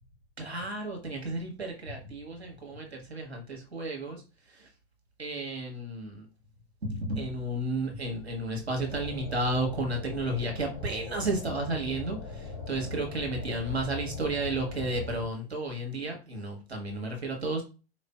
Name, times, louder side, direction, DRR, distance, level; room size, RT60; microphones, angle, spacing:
voice 1, 0.4-4.2 5.2-6.3 6.8-17.6, right 2 dB, 85° right, 1 dB, 1.0 m, -32 dB
sound 1, 8.8-15.3, left 4 dB, 45° left, 0.9 m, -40 dB
4.2 x 2.5 x 2.2 m, 0.32 s
figure-of-eight pair, 95°, 31 cm